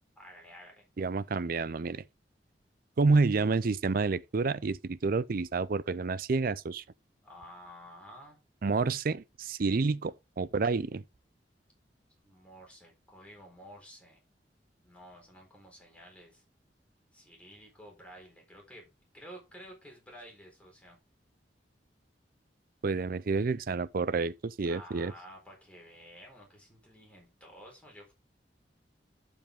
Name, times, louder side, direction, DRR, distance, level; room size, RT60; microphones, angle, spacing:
voice 1, 0.2-0.8 7.2-8.4 12.2-14.2 14.8-16.4 17.1-18.9 19.1-21.0 24.7-28.1, equal, 5° left, 4.1 m, -51 dB
voice 2, 1.0-2.0 3.0-6.8 8.6-11.0 22.8-25.1, right 4 dB, 55° right, 0.5 m, -29 dB
11.5 x 5.3 x 3.7 m
head